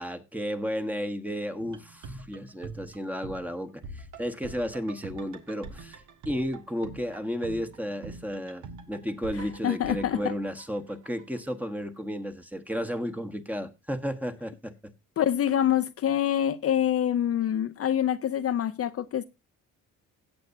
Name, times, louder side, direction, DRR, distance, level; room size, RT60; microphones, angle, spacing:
voice 1, 0.0-14.9, equal, 5° right, 1.2 m, -33 dB
sound 1, 1.6-11.5 11.8-11.9, right 3 dB, 80° right, 1.7 m, -45 dB
voice 2, 9.6-10.2 15.2-19.2, left 10 dB, 50° left, 0.6 m, -25 dB
16.5 x 7.8 x 2.7 m
cardioid pair, 90°, 30 cm